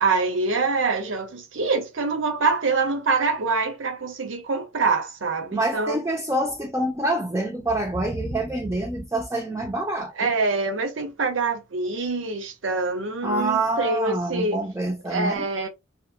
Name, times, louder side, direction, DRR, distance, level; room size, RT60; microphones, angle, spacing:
voice 1, 0.0-6.0 10.2-14.6 15.1-15.7, right 4 dB, 85° right, 0.7 m, -25 dB
voice 2, 5.5-10.3 13.2-15.4, right 1 dB, 15° right, 0.5 m, -26 dB
2.8 x 2.5 x 2.3 m
head